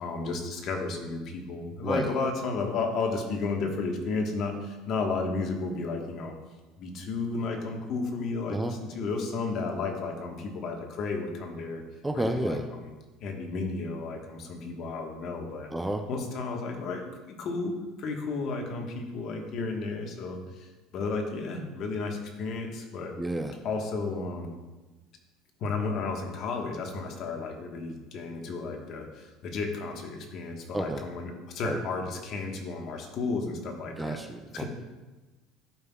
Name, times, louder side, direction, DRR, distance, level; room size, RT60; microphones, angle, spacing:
voice 1, 0.0-6.3 6.8-11.8 12.1-12.8 13.2-15.7 16.1-17.7 18.0-23.2 23.6-24.6 25.6-34.2 34.5-34.6, left 3 dB, 55° left, 2 dB, 1.3 m, -33 dB
voice 2, 1.8-2.1 8.5-8.8 12.0-12.7 15.7-16.1 23.2-23.6 30.7-31.1 31.6-31.8 34.0-34.6, right 1 dB, 10° right, 6 dB, 0.5 m, -30 dB
11.5 x 5.5 x 2.3 m, 1.2 s
supercardioid pair, 105°, 0 cm